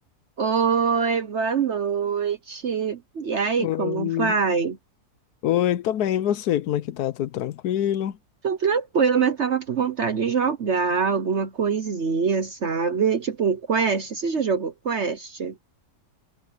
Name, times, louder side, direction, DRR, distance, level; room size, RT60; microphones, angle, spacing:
voice 1, 0.4-4.8 8.4-15.5, right 6 dB, 50° right, 1.2 m, -24 dB
voice 2, 3.6-4.4 5.4-8.2, left 11 dB, 85° left, 1.3 m, -25 dB
omnidirectional pair, 1.6 m